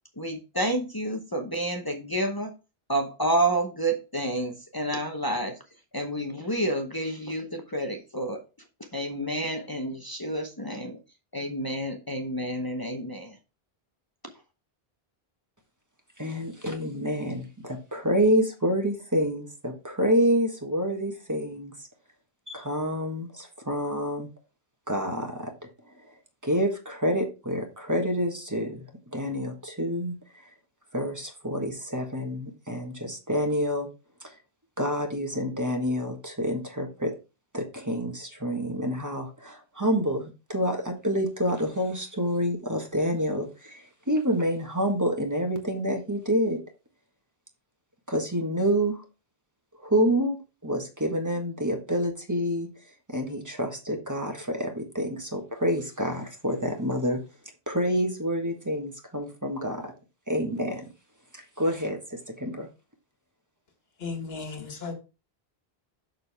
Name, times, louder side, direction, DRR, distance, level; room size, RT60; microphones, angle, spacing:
voice 1, 0.2-2.5 2.9-5.6 5.9-8.4 8.9-11.0 11.3-13.4, right 1 dB, 20° left, 0.9 m, -29 dB
voice 2, 16.2-21.7 22.5-24.3 24.9-25.5 26.1-26.2 26.4-28.8 29.1-30.5 30.9-33.9 34.2-34.3 34.8-37.1 37.5-46.6 48.1-49.0 49.8-52.7 53.1-57.2 57.7-59.9 60.3-60.9 61.3-62.7, equal, 15° right, 1.5 m, -28 dB
voice 3, 64.0-64.9, left 4 dB, 75° left, 1.8 m, -35 dB
6.7 x 6.6 x 3.4 m
omnidirectional pair, 1.0 m